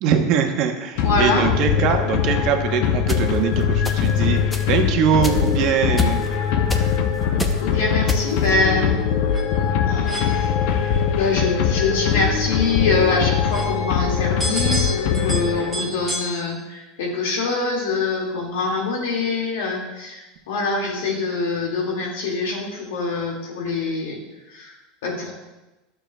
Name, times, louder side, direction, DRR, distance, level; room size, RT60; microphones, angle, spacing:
voice 1, 0.0-4.4 4.7-6.3, right 7 dB, 55° right, 5 dB, 0.9 m, -22 dB
voice 2, 1.0-1.5 7.3-8.9 9.3-9.4 9.8-10.5 11.2-24.2 24.5-24.8 25.0-25.3, left 3 dB, 85° left, -1 dB, 2.1 m, -24 dB
sound 1, 1.0-16.0, left 7 dB, 65° left, 0.7 m, -22 dB
sound 2, 3.1-3.2 3.8-4.2 4.5-4.7 5.2-5.5 6.0-6.3 6.7-7.0 7.4-7.6 8.1-8.5, left 2 dB, 15° left, 0.7 m, -25 dB
sound 3, 4.6-16.3, right 1 dB, 10° right, 1.9 m, -35 dB
11.0 x 6.8 x 2.3 m, 1.1 s
supercardioid pair, 120°, 0 cm